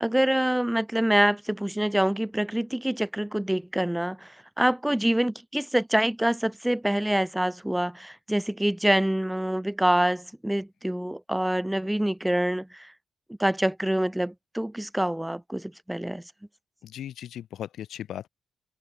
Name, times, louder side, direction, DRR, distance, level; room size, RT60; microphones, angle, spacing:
voice 1, 0.0-4.3 4.6-12.9 13.4-16.2, right 1 dB, 5° right, 0.5 m, -26 dB
voice 2, 16.8-18.3, left 11 dB, 80° left, 1.1 m, -37 dB
cardioid pair, 85°, 0 cm